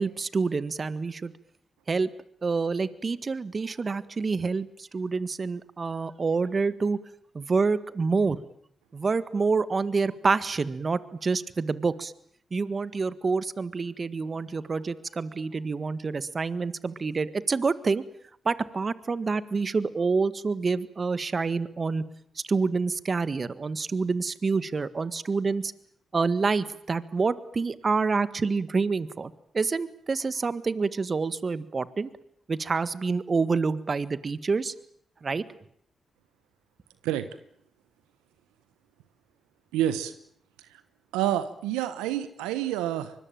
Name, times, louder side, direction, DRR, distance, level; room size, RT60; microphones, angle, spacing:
voice 1, 0.0-1.3 1.9-2.1 2.4-7.0 7.3-8.4 8.9-12.1 12.5-18.0 18.5-22.0 22.5-25.7 26.1-32.1 32.5-34.7 35.2-35.4, right 4 dB, 45° right, 15 dB, 1.7 m, -27 dB
voice 2, 39.7-40.1 41.1-43.1, right 12 dB, 90° right, 12 dB, 1.2 m, -28 dB
24.5 x 22.5 x 9.1 m, 0.69 s
hypercardioid pair, 40°, 0 cm